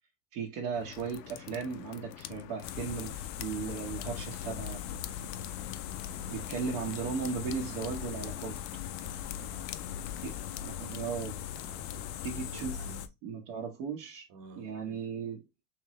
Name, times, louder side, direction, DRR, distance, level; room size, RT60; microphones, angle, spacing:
voice 1, 0.3-4.8 6.3-8.6 10.2-11.4 12.2-12.8 13.2-14.3 14.6-15.4, right 5 dB, 60° right, 1.2 m, -36 dB
sound 1, 0.7-12.6, left 12 dB, 80° left, 0.6 m, -46 dB
sound 2, 2.6-13.1, left 10 dB, 40° left, 0.4 m, -40 dB
voice 2, 6.1-6.5 9.0-9.8 11.6-13.1 14.3-15.1, right 3 dB, 40° right, 1.5 m, -53 dB
3.5 x 3.1 x 3.0 m
hypercardioid pair, 110°, 49 cm